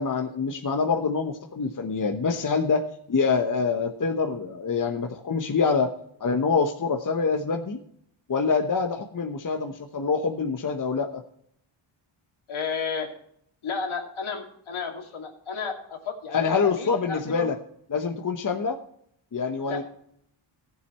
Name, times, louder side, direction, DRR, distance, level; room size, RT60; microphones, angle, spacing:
voice 1, 0.0-5.9 6.2-7.8 8.3-11.2 16.3-17.6 17.9-18.8 19.3-19.8, left 5 dB, 40° left, 4 dB, 1.1 m, -25 dB
voice 2, 12.5-13.1 13.6-17.5 19.7-19.8, left 5 dB, 70° left, 3 dB, 2.5 m, -32 dB
15.0 x 7.9 x 4.2 m, 0.69 s
cardioid pair, 75°, 50 cm